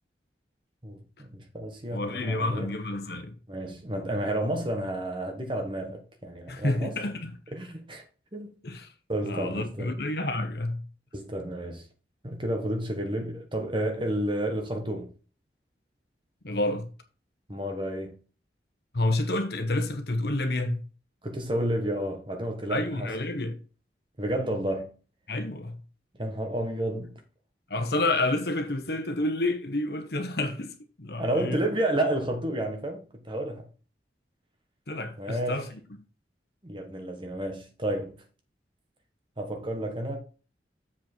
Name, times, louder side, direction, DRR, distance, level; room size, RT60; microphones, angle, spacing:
voice 1, 0.8-2.7 3.5-6.9 7.5-8.0 8.3-8.5 9.1-9.9 11.1-11.8 12.2-15.1 17.5-18.2 21.2-23.1 24.2-24.9 26.2-27.2 31.2-33.6 35.2-35.6 36.6-38.2 39.4-40.2, right 1 dB, 30° right, 1.4 m, -31 dB
voice 2, 1.9-3.3 6.5-7.4 8.6-8.9 9.2-10.8 16.4-16.9 18.9-20.8 22.7-23.5 25.3-25.8 27.7-31.6 34.9-35.8, left 2 dB, 60° left, 1.1 m, -29 dB
7.3 x 5.3 x 4.5 m
head